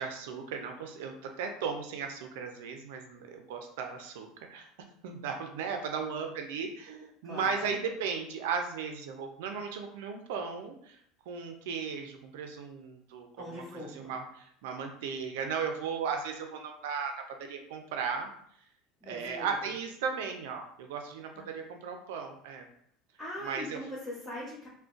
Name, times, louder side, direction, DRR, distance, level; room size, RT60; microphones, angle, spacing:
voice 1, 0.0-4.7 5.0-11.0 11.3-18.3 19.0-22.7 23.4-23.8, right 6 dB, 85° right, 4 dB, 0.4 m, -36 dB
voice 2, 7.2-7.8 13.4-14.1 19.0-19.7 21.3-21.4 23.2-24.7, left 1 dB, 10° left, -12 dB, 1.1 m, -41 dB
3.7 x 2.2 x 2.5 m, 0.66 s
supercardioid pair, 115°, 0 cm